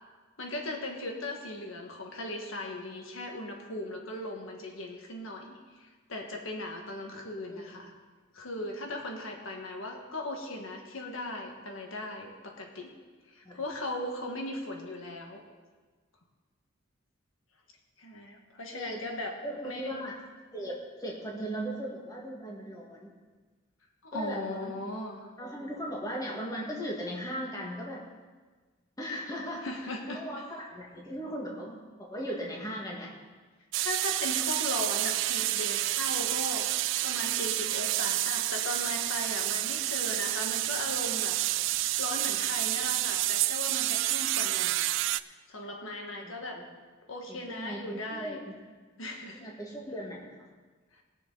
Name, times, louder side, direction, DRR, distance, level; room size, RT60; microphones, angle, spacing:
voice 1, 0.4-5.5 6.1-8.0 8.3-12.9 13.3-15.4 18.0-19.3 19.6-20.0 24.0-25.2 29.6-30.2 33.8-36.7 37.0-41.4 42.0-44.9 45.5-46.6 47.1-48.4 49.0-49.5, left 2 dB, 80° left, 1 dB, 1.7 m, -38 dB
voice 2, 18.7-19.1 19.4-20.2 20.5-23.1 24.1-24.8 25.4-28.0 29.0-29.7 30.1-33.1 46.2-46.6 47.3-48.5 49.3-50.3, equal, 20° left, -2 dB, 2.0 m, -38 dB
sound 1, 33.7-45.2, right 16 dB, 65° right, 0.3 m, -29 dB
20.5 x 6.9 x 4.1 m, 1.4 s
head